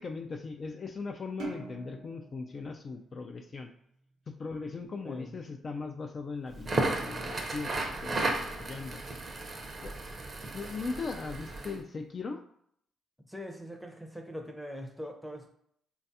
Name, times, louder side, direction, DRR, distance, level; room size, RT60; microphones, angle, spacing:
voice 1, 0.0-3.7 4.3-9.0 9.8-10.0 10.5-12.4, left 4 dB, 45° left, 4 dB, 0.3 m, -39 dB
sound 1, 1.4-4.0, right 3 dB, 75° right, 0.7 m, -44 dB
Crackle, 6.5-11.8, right 2 dB, 40° right, 0.6 m, -34 dB
voice 2, 13.3-15.5, equal, ahead, 3 dB, 0.6 m, -42 dB
3.2 x 2.3 x 2.7 m, 0.66 s
cardioid pair, 75°, 0 cm